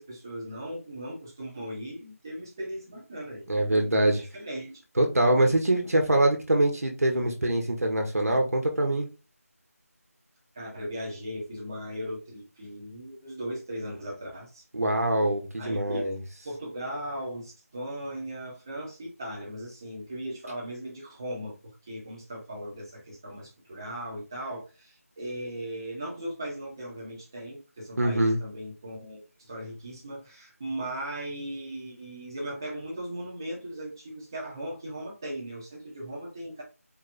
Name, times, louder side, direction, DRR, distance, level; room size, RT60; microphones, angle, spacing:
voice 1, 0.0-4.8 10.5-14.6 15.6-16.0 16.4-36.6, right 1 dB, 15° right, 1.1 m, -38 dB
voice 2, 3.5-4.2 5.0-9.1 14.7-16.2 28.0-28.4, right 1 dB, 75° right, 1.3 m, -24 dB
4.6 x 2.3 x 4.1 m
figure-of-eight pair, 175°, 8 cm